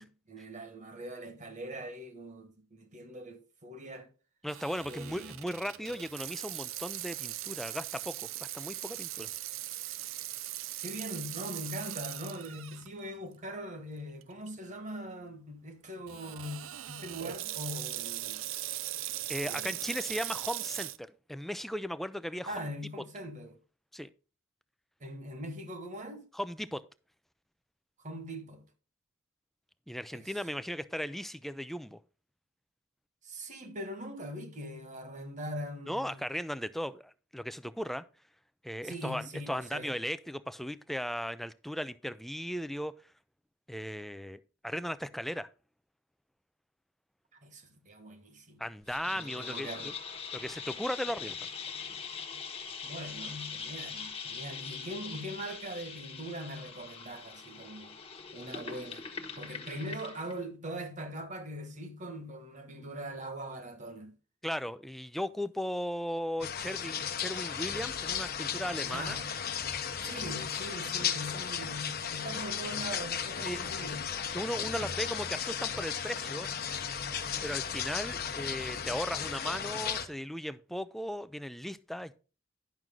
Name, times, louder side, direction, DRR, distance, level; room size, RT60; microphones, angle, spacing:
voice 1, 0.0-4.1 4.8-5.3 10.8-18.4 19.4-19.8 22.4-23.6 25.0-26.2 28.0-28.6 30.1-30.3 33.2-36.2 38.8-39.9 47.4-48.6 49.1-49.9 52.8-58.0 58.3-59.1 59.4-64.1 68.9-69.3 70.0-74.1, equal, 40° right, 1.5 m, -42 dB
voice 2, 4.4-9.3 19.3-22.5 23.9-24.1 26.3-26.8 29.9-32.0 35.9-38.0 38.6-43.0 43.7-45.5 48.6-49.9 50.3-51.5 64.4-69.2 73.4-73.6 74.3-76.5 77.4-82.1, equal, ahead, 0.4 m, -37 dB
Water tap faucet / Sink (filling or washing), 4.5-12.9 13.4-13.5 14.2-14.5 16.1-21.0, right 14 dB, 70° right, 0.5 m, -39 dB
sound 1, 48.9-60.4, left 6 dB, 30° left, 1.2 m, -42 dB
sound 2, 66.4-80.1, left 8 dB, 50° left, 1.0 m, -35 dB
10.5 x 6.1 x 3.8 m
head